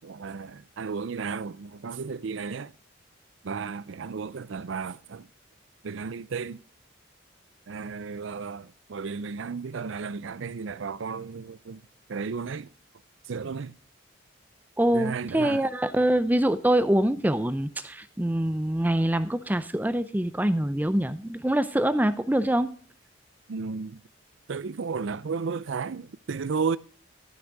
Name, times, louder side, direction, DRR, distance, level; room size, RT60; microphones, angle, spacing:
voice 1, 0.0-2.7 3.4-5.3 5.8-6.6 7.7-11.8 12.1-12.7 13.3-13.8 14.9-15.6 23.5-24.0 24.5-26.8, right 5 dB, 70° right, 0.5 m, -33 dB
voice 2, 14.8-22.7, right 1 dB, 10° right, 0.4 m, -24 dB
13.5 x 6.4 x 4.7 m
head